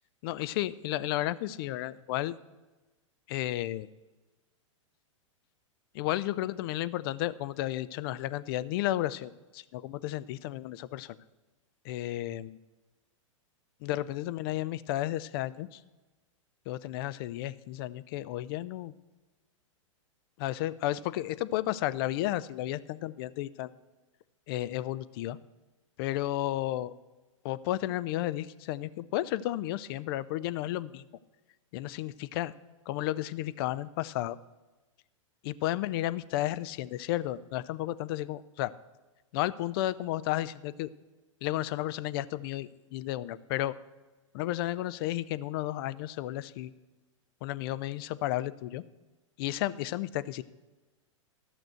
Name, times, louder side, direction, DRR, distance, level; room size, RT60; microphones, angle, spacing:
voice 1, 0.2-2.3 3.3-3.9 5.9-11.2 11.8-12.5 13.8-15.8 16.7-18.9 20.4-23.7 24.5-25.4 26.0-26.9 27.4-31.0 31.7-32.5 32.9-34.4 35.4-38.7 39.3-40.9 41.4-43.7 44.3-46.7 47.4-48.8 49.4-50.4, left 15 dB, 45° left, 15 dB, 0.5 m, -33 dB
14.0 x 6.1 x 7.8 m, 1.1 s
figure-of-eight pair, 105°, 17 cm